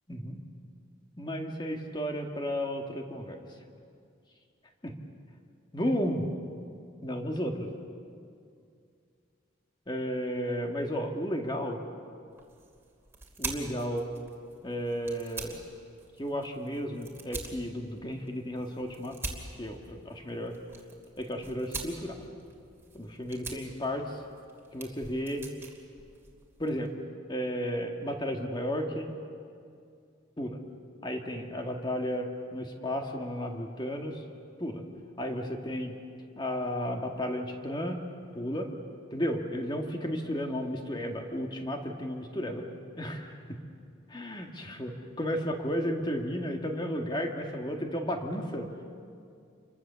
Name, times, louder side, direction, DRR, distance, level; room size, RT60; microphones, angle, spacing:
voice 1, 0.1-0.4 1.2-3.5 4.8-4.9 5.7-6.3 7.0-7.7 9.9-11.8 13.4-14.1 14.6-15.6 16.2-19.2 19.6-20.6 21.2-22.3 22.9-24.2 24.7-25.4 26.6-29.1 30.4-30.6 31.0-34.2 34.6-34.8 35.2-35.9 36.4-38.0 38.3-38.7 39.1-43.6 44.1-44.9 45.2-48.7, equal, 20° left, 2 dB, 2.0 m, -33 dB
sound 1, 12.3-26.9, right 3 dB, 10° right, 2.6 m, -45 dB
28.5 x 24.0 x 7.0 m, 2.4 s
head